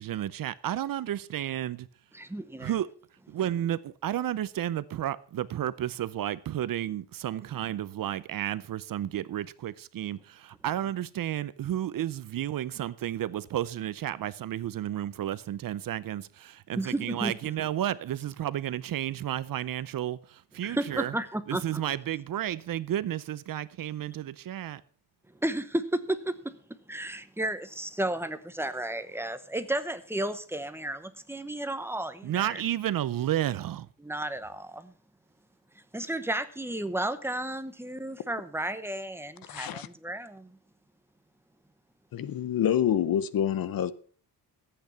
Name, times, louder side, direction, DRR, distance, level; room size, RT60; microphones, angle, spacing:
voice 1, 0.0-1.9 2.6-2.9 3.3-21.1 21.5-24.8 32.2-33.9, right 11 dB, 55° right, 0.6 m, -32 dB
voice 2, 2.1-2.7 16.8-17.3 20.6-21.8 25.4-26.3 26.9-32.6 34.0-34.9 35.9-40.6, right 1 dB, 5° right, 0.9 m, -33 dB
voice 3, 39.5-39.9 42.1-43.9, left 10 dB, 60° left, 0.8 m, -27 dB
13.5 x 8.8 x 5.7 m
wide cardioid pair, 150°, 40 cm